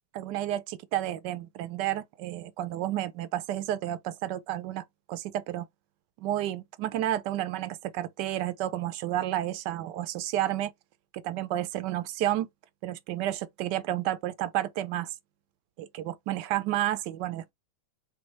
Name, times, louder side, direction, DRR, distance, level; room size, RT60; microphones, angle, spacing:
voice 1, 0.1-5.7 6.2-10.7 11.2-12.5 12.8-15.1 15.8-17.5, right 13 dB, 70° right, 1.1 m, -31 dB
5.3 x 2.6 x 3.1 m
omnidirectional pair, 2.2 m